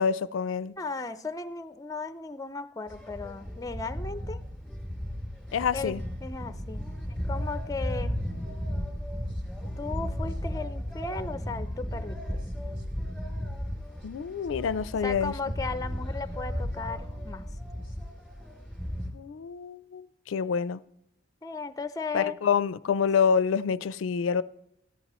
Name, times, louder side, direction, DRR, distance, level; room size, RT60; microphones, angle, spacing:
voice 1, 0.0-0.7 5.5-6.0 14.0-15.3 19.1-20.8 22.1-24.4, left 6 dB, 80° left, 0.4 m, -27 dB
voice 2, 0.8-4.4 5.7-8.2 9.8-12.4 15.0-17.5 21.4-22.4, left 4 dB, 20° left, 0.4 m, -36 dB
sound 1, 2.9-19.1, equal, 5° right, 2.6 m, -35 dB
14.0 x 11.0 x 3.0 m
head